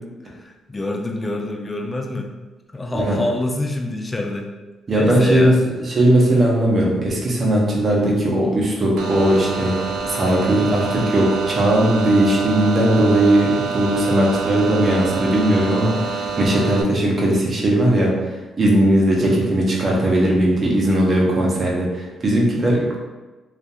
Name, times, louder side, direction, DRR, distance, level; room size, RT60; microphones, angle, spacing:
voice 1, 0.3-2.3 2.7-4.5 4.9-5.6, left 2 dB, 25° left, 2 dB, 0.4 m, -26 dB
voice 2, 4.9-5.5 5.8-9.8 10.1-23.0, right 1 dB, 40° right, -2 dB, 0.7 m, -18 dB
sound 1, 9.0-16.8, right 4 dB, 85° right, 0.3 m, -26 dB
2.6 x 2.4 x 2.3 m, 1.2 s
cardioid pair, 90°, 0 cm